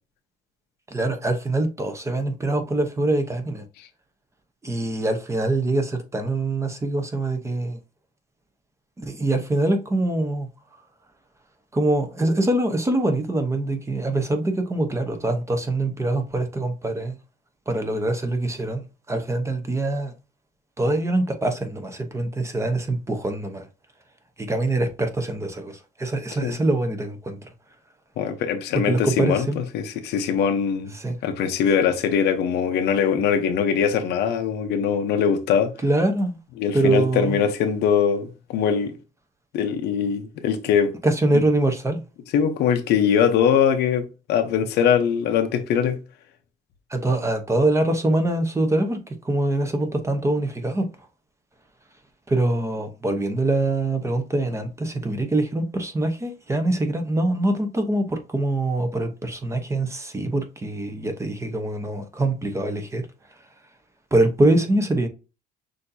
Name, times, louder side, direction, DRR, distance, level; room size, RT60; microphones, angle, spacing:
voice 1, 0.9-3.6 4.6-7.8 9.0-10.5 11.7-17.2 17.7-20.1 20.8-23.7 24.4-27.5 28.7-29.6 30.9-31.2 35.8-36.4 36.7-37.4 41.0-42.0 46.9-50.8 52.3-63.0 64.1-65.1, right 2 dB, 15° right, 0.9 m, -24 dB
voice 2, 28.2-30.9 31.2-35.7 36.6-38.9 39.5-40.9 41.3-41.4 42.3-46.0, left 7 dB, 80° left, 0.8 m, -22 dB
6.3 x 2.8 x 2.7 m
cardioid pair, 110°, 17 cm